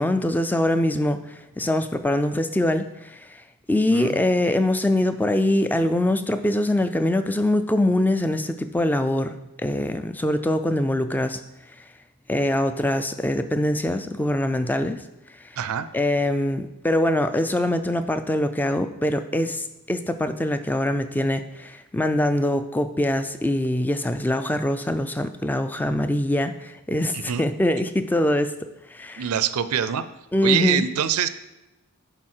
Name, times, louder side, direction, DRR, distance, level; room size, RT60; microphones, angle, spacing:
voice 1, 0.0-3.4 3.7-11.4 12.3-15.0 15.4-15.5 15.9-28.5 28.9-29.3 30.3-30.8, left 1 dB, 10° left, 10 dB, 0.3 m, -23 dB
voice 2, 3.9-4.2 15.6-15.9 27.1-27.5 29.2-30.0 30.4-31.3, right 9 dB, 75° right, 13 dB, 0.4 m, -24 dB
11.0 x 3.9 x 4.4 m, 0.98 s
head